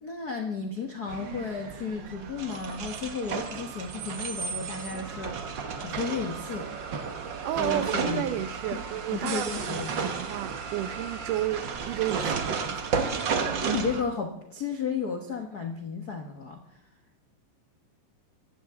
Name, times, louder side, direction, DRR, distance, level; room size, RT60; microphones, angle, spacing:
voice 1, 0.0-6.9 7.6-8.3 9.1-9.9 13.6-16.8, left 5 dB, 55° left, 1.0 m, -33 dB
sound 1, 1.1-14.0, right 5 dB, 60° right, 1.2 m, -33 dB
voice 2, 7.4-12.9, right 12 dB, 80° right, 2.3 m, -32 dB
24.0 x 15.5 x 3.7 m
omnidirectional pair, 3.8 m